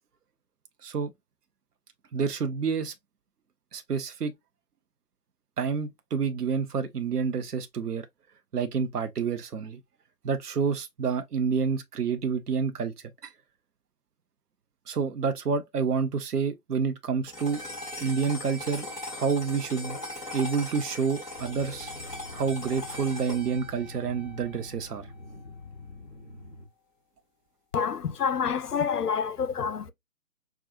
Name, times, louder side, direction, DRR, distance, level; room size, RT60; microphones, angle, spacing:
voice 1, 2.1-2.9 3.7-4.3 5.6-8.1 8.5-9.8 10.2-12.9 13.2-13.3 14.9-17.6 18.0-20.0 20.3-21.9 22.3-25.1, right 5 dB, 70° right, 0.7 m, -28 dB
sound 1, 17.3-25.8, left 1 dB, ahead, 1.1 m, -40 dB
sound 2, 21.3-26.7, left 3 dB, 20° left, 1.5 m, -46 dB
voice 2, 27.7-29.9, left 7 dB, 70° left, 0.6 m, -28 dB
4.9 x 2.3 x 2.6 m
figure-of-eight pair, 145°, 49 cm